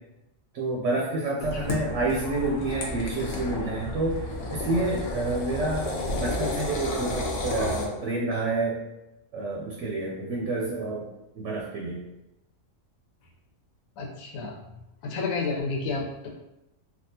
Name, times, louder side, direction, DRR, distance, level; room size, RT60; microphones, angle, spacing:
voice 1, 0.5-5.9 6.2-8.8 9.3-11.1 11.3-12.0, right 2 dB, 70° right, -2 dB, 0.8 m, -29 dB
sound 1, 1.4-7.9, left 2 dB, 70° left, 0.9 m, -31 dB
voice 2, 14.0-14.5 15.0-16.3, left 4 dB, 85° left, 0 dB, 1.1 m, -30 dB
3.5 x 2.3 x 2.7 m, 0.94 s
omnidirectional pair, 1.4 m